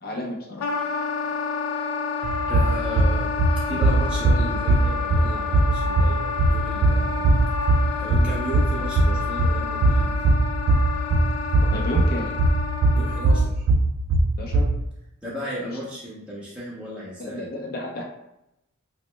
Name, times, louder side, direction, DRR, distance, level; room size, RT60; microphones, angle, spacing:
voice 1, 0.0-0.6 11.7-12.4 14.4-14.7 17.2-18.0, left 1 dB, 45° left, -1 dB, 0.6 m, -31 dB
Wind instrument woodwind instrument, 0.6-13.5, left 5 dB, 90° left, 0.4 m, -29 dB
sound 1, 2.2-14.8, right 2 dB, 65° right, 0.3 m, -21 dB
voice 2, 2.5-3.3 3.7-7.2 8.0-10.1 12.9-13.6 15.2-17.5, equal, 5° right, -8 dB, 0.6 m, -34 dB
3.1 x 2.1 x 3.0 m, 0.85 s
head